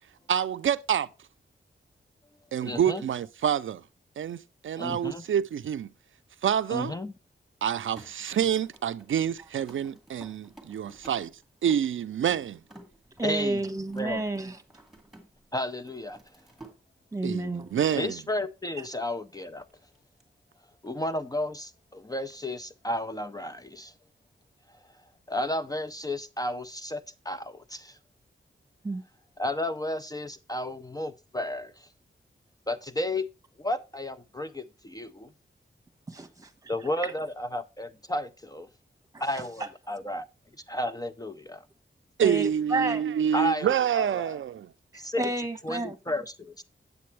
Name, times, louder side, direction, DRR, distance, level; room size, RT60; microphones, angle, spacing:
voice 1, 0.3-1.1 2.5-3.8 4.2-5.9 6.4-6.9 7.6-11.3 11.6-12.6 17.2-18.1 42.2-44.7, right 9 dB, 80° right, 0.4 m, -27 dB
voice 2, 2.6-3.0 4.8-5.2 6.7-7.1 13.2-13.6 14.0-14.2 15.5-16.2 17.9-19.7 20.8-23.9 25.3-28.0 29.4-31.9 32.7-33.3 33.6-35.3 36.7-38.7 39.2-40.2 40.7-41.7 43.3-44.4 44.9-45.3 45.6-46.6, left 1 dB, 20° left, 0.5 m, -32 dB
sound 1, 7.9-15.5 15.8-16.8 19.4-20.2, right 2 dB, ahead, 2.1 m, -53 dB
voice 3, 13.2-14.6 17.1-17.7 28.8-29.0 36.4-36.5 42.2-43.0 44.9-46.0, right 2 dB, 15° right, 1.2 m, -30 dB
8.5 x 8.3 x 3.3 m
wide cardioid pair, 125°, 20 cm